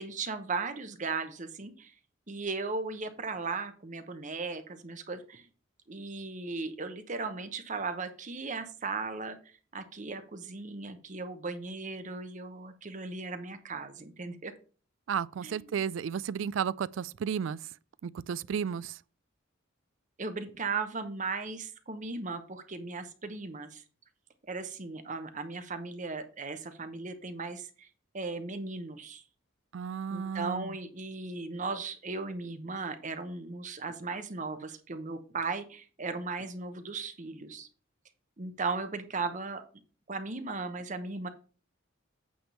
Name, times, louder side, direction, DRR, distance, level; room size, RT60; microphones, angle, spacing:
voice 1, 0.0-1.9 2.3-5.5 5.9-14.5 15.4-15.8 20.2-23.8 24.5-27.9 28.1-29.2 30.1-37.7 38.4-39.6 40.1-41.3, right 4 dB, 40° right, 0.9 m, -37 dB
voice 2, 15.1-17.6 18.0-19.0 29.7-30.7, right 7 dB, 70° right, 0.3 m, -33 dB
8.7 x 3.6 x 6.8 m
head